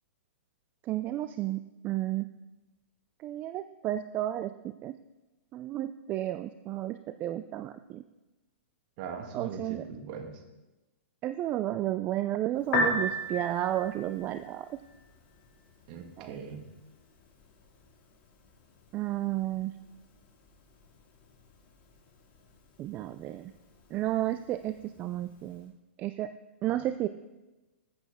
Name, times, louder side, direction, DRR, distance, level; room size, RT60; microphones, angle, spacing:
voice 1, 0.9-2.3 3.2-4.5 4.8-5.0 5.5-8.0 9.3-9.8 11.2-14.8 16.2-16.3 18.9-19.7 22.8-23.5 23.9-25.7 26.0-26.3 26.6-27.1, right 13 dB, 25° right, 11 dB, 0.3 m, -32 dB
voice 2, 9.0-10.4 15.9-16.7 26.7-26.8, right 6 dB, 40° right, 5 dB, 1.6 m, -40 dB
Piano, 12.6-25.6, left 1 dB, 35° left, 2.3 m, -39 dB
14.0 x 7.8 x 3.6 m, 1.1 s
hypercardioid pair, 135°, 7 cm